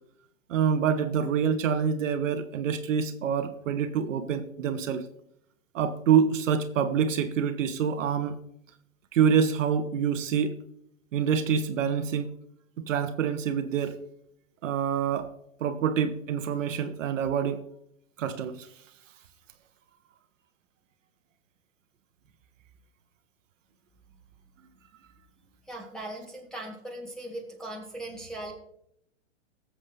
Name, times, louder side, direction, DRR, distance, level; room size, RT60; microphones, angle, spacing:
voice 1, 0.5-5.1 5.7-8.4 9.1-10.6 11.1-12.3 12.8-14.0 14.6-15.3 15.6-17.6 18.2-18.7, right 7 dB, 70° right, 9 dB, 1.2 m, -26 dB
voice 2, 25.6-28.5, right 1 dB, ahead, 0 dB, 2.8 m, -39 dB
18.0 x 7.5 x 3.3 m, 0.74 s
hypercardioid pair, 130°, 40 cm